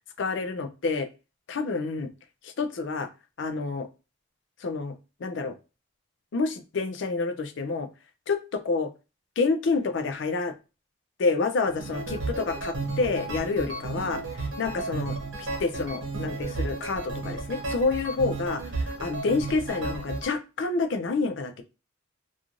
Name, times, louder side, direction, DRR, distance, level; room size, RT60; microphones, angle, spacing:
voice 1, 0.2-1.1 1.5-2.1 2.4-3.1 3.4-3.9 4.6-4.9 5.2-5.6 6.3-7.9 8.3-8.4 8.7-8.9 9.4-10.5 11.2-18.6 19.0-21.6, left 4 dB, 60° left, 9 dB, 0.4 m, -28 dB
sound 1, 11.7-20.3, right 3 dB, 70° right, 0.8 m, -33 dB
2.9 x 2.4 x 2.5 m, 0.30 s
head